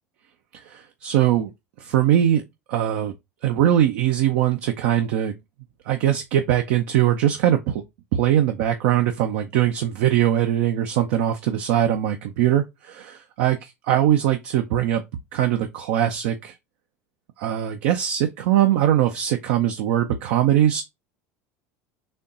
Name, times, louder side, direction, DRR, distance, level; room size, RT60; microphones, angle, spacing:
voice 1, 0.7-1.5 1.8-2.4 2.7-3.1 3.4-5.3 5.9-7.8 8.1-15.0 15.3-16.5 17.4-20.8, right 11 dB, 65° right, 0.6 m, -21 dB
4.3 x 2.9 x 3.8 m
hypercardioid pair, 80°, 8 cm